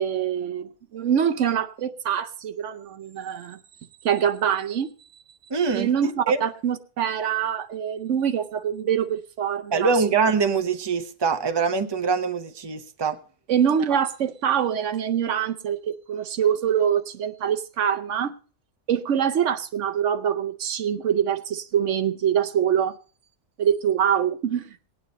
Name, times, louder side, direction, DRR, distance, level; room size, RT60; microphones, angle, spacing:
voice 1, 0.0-3.6 4.0-4.9 5.7-9.9 13.5-18.3 18.9-23.0 23.6-24.8, right 8 dB, 75° right, 1.1 m, -24 dB
voice 2, 5.5-5.9 6.3-6.4 9.7-13.2, right 5 dB, 25° right, 0.8 m, -23 dB
18.0 x 9.5 x 4.1 m
omnidirectional pair, 1.3 m